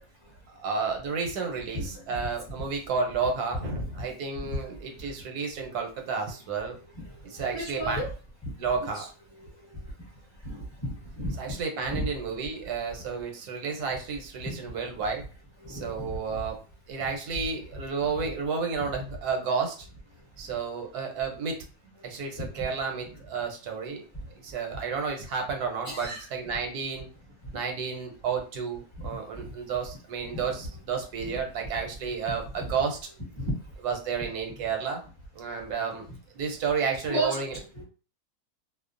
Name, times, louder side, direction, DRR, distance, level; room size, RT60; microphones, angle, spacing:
voice 1, 0.5-6.8 7.2-8.0 8.6-9.1 11.4-15.2 15.7-19.9 20.4-21.6 22.0-24.0 24.3-27.1 27.5-33.0 33.8-35.0 35.3-36.1 36.3-37.5, right 5 dB, 85° right, 3 dB, 1.2 m, -31 dB
voice 2, 1.7-2.2 3.8-4.1 4.4-4.8 7.0-8.1 8.4-8.5 8.9-9.1 9.6-9.7 10.4-11.6 11.9-12.0 14.4-14.6 15.6-16.4 16.9-17.0 22.3-22.6 25.8-26.3 29.1-29.5 30.3-30.5 33.4-33.5 37.1-37.8, right 1 dB, 25° left, -6 dB, 0.7 m, -34 dB
2.7 x 2.0 x 2.5 m, 0.36 s
omnidirectional pair, 1.6 m